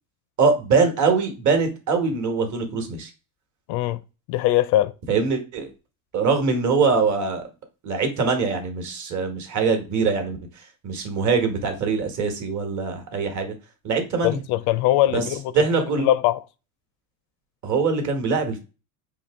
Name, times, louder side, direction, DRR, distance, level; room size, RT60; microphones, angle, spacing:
voice 1, 0.4-3.1 5.1-5.7 6.1-7.5 7.8-10.4 10.8-13.5 13.8-14.4 15.1-15.2 15.5-16.1 17.6-18.6, right 4 dB, 35° right, 1.3 m, -23 dB
voice 2, 3.7-4.0 4.3-4.9 14.2-15.5 16.0-16.4, left 14 dB, 55° left, 0.5 m, -21 dB
4.3 x 2.9 x 3.5 m
supercardioid pair, 130°, 49 cm